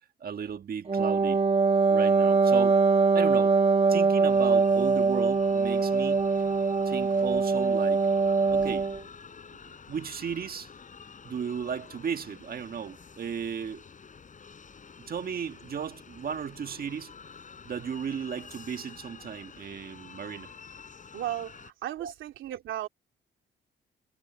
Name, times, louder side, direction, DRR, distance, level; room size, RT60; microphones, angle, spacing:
voice 1, 0.2-1.4 1.9-2.8 3.1-3.6 3.9-6.4 6.8-8.1 8.5-8.9 9.9-10.7 11.2-13.8 15.0-17.1 17.6-20.5 22.0-22.1, right 7 dB, 50° right, 1.5 m, -35 dB
Wind instrument woodwind instrument, 0.9-9.0, right 4 dB, 30° right, 1.8 m, -23 dB
sound 1, 4.3-21.7, left 5 dB, 40° left, 5.8 m, -49 dB
voice 2, 21.1-22.9, right 13 dB, 80° right, 2.5 m, -35 dB
cardioid pair, 90°, 20 cm